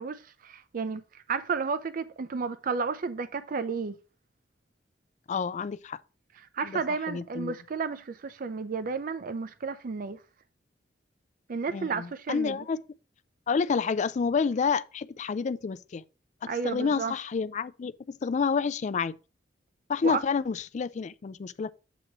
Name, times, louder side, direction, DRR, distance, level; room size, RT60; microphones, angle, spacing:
voice 1, 0.0-4.0 6.5-10.2 11.5-12.6 16.5-17.1 20.0-20.2, right 5 dB, 50° right, 0.5 m, -32 dB
voice 2, 5.3-6.0 6.6-6.8 7.1-7.5 11.7-12.8 13.5-16.0 16.4-19.1 19.9-21.7, left 5 dB, 40° left, 0.3 m, -29 dB
8.0 x 2.9 x 6.0 m
head